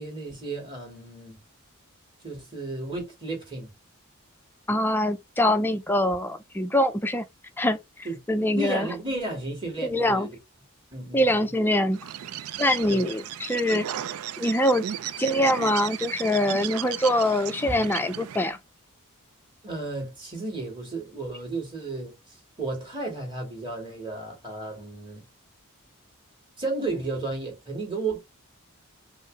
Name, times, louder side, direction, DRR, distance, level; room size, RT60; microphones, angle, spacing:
voice 1, 0.0-1.4 2.2-3.7 8.0-10.4 10.9-11.3 12.8-13.0 17.7-17.8 19.6-22.1 22.6-25.2 26.6-28.2, right 2 dB, 25° right, 2.4 m, -33 dB
voice 2, 4.7-7.2 7.6-7.8 8.3-8.9 9.8-10.3 11.1-12.1 12.6-13.9 14.4-14.8 15.2-18.6, left 1 dB, 10° left, 0.4 m, -24 dB
Bird, 11.9-18.6, right 10 dB, 90° right, 0.4 m, -35 dB
5.5 x 2.0 x 3.6 m
head